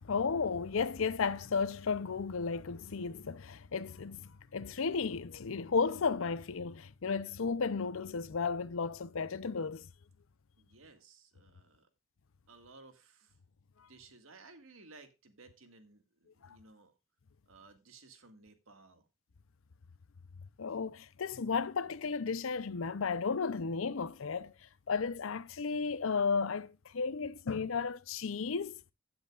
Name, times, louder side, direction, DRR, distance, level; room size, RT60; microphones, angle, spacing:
voice 1, 0.0-9.9 20.6-24.5 24.9-28.8, left 5 dB, 70° left, 0.6 m, -34 dB
voice 2, 10.6-11.9 12.5-13.3 13.9-16.9 17.5-19.0, right 3 dB, 75° right, 1.8 m, -57 dB
16.0 x 7.8 x 2.4 m
head